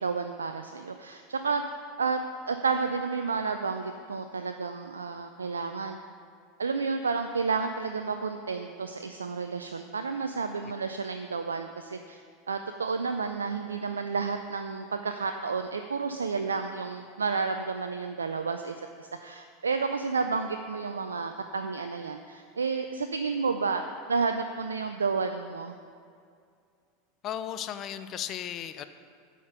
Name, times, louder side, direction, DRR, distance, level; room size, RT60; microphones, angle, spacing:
voice 1, 0.0-1.6 2.0-2.2 2.5-6.0 6.6-12.2 12.5-23.8 24.1-25.7, right 4 dB, 85° right, 6 dB, 0.4 m, -31 dB
voice 2, 27.2-28.8, left 10 dB, 40° left, 11 dB, 0.6 m, -35 dB
9.4 x 5.1 x 6.7 m, 2.2 s
hypercardioid pair, 85°, 0 cm